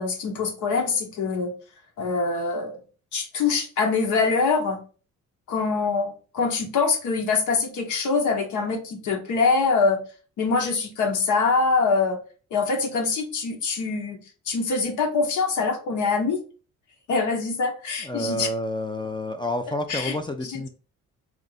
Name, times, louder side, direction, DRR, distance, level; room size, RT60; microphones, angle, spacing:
voice 1, 0.0-1.5 2.0-2.8 3.1-4.8 5.5-10.0 10.4-12.2 12.5-14.2 14.5-16.4 17.1-18.5 19.9-20.1 20.4-20.6, left 4 dB, 75° left, 3 dB, 1.0 m, -24 dB
voice 2, 18.0-20.7, left 1 dB, 15° left, 6 dB, 0.4 m, -29 dB
3.6 x 2.5 x 3.9 m, 0.37 s
cardioid pair, 90°, 30 cm